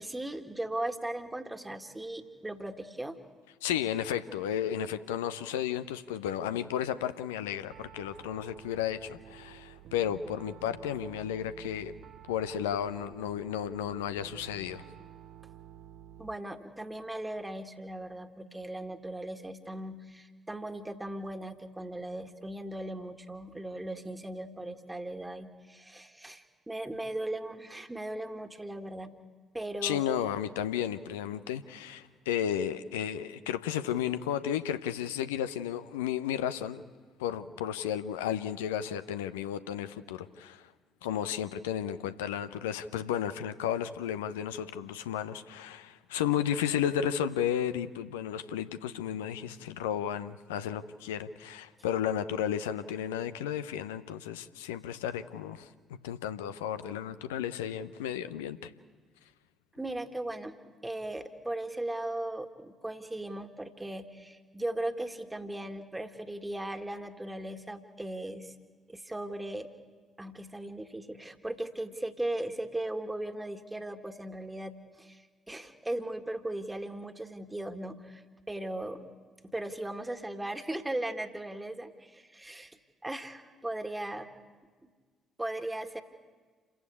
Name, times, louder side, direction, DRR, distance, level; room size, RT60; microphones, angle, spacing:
voice 1, 0.0-3.2 16.2-29.1 29.5-30.0 41.1-41.3 59.7-60.6 60.8-68.5 68.9-69.7 70.2-75.2 75.5-78.2 78.5-79.0 79.4-82.8 83.0-84.3 85.4-86.0, right 1 dB, 10° right, 7 dB, 1.9 m, -38 dB
voice 2, 3.6-11.9 12.3-14.8 29.8-36.8 37.2-40.6 41.0-55.7 56.0-58.7, left 9 dB, 70° left, 11 dB, 0.7 m, -33 dB
Piano, 7.7-16.3, right 11 dB, 55° right, 0.6 m, -51 dB
28.5 x 15.5 x 8.4 m, 1.5 s
figure-of-eight pair, 45°, 0 cm